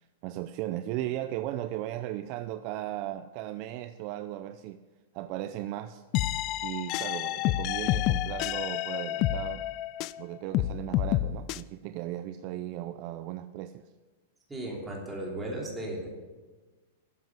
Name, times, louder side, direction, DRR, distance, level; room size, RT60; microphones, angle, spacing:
voice 1, 0.0-4.8 5.1-6.0 6.6-9.6 10.2-13.9, right 13 dB, 40° right, 11 dB, 0.5 m, -36 dB
sound 1, 6.1-10.2 10.5-11.6, left 15 dB, 35° left, 0.4 m, -29 dB
voice 2, 14.5-16.1, right 1 dB, 10° right, -3 dB, 3.2 m, -35 dB
12.5 x 8.0 x 7.5 m, 1.3 s
supercardioid pair, 155°, 0 cm